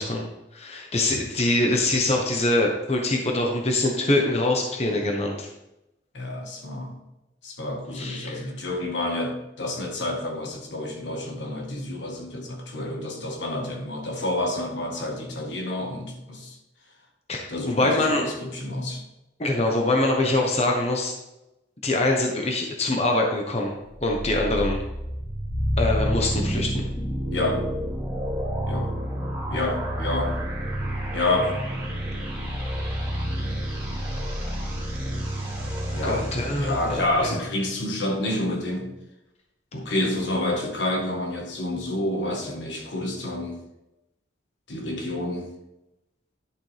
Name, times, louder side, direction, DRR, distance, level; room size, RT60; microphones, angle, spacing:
voice 1, 0.0-5.5 7.9-8.4 17.3-18.2 19.4-21.1 21.8-23.7 24.0-24.8 25.8-26.8 36.0-37.3, left 2 dB, 35° left, 1 dB, 1.1 m, -24 dB
voice 2, 6.1-7.0 7.4-16.6 17.5-19.0 27.3-27.7 28.7-28.9 29.5-30.4 31.1-31.6 35.9-36.3 36.5-38.9 39.7-43.6 44.7-45.5, left 1 dB, 75° left, 3 dB, 1.5 m, -29 dB
sound 1, 23.9-37.2, equal, 10° right, 3.4 m, -29 dB
11.0 x 6.8 x 3.4 m, 0.92 s
head